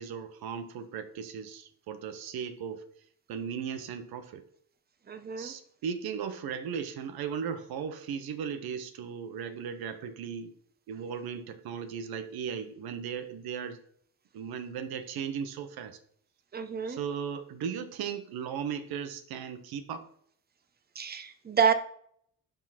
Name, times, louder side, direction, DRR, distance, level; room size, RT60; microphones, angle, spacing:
voice 1, 0.0-2.9 3.3-4.4 5.4-10.5 10.9-13.8 14.3-16.0 16.9-20.1, right 7 dB, 85° right, 9 dB, 1.0 m, -37 dB
voice 2, 5.1-5.5 16.5-17.0 20.9-21.7, right 7 dB, 25° right, 8 dB, 0.9 m, -28 dB
7.1 x 3.8 x 5.9 m, 0.62 s
cardioid pair, 95°, 37 cm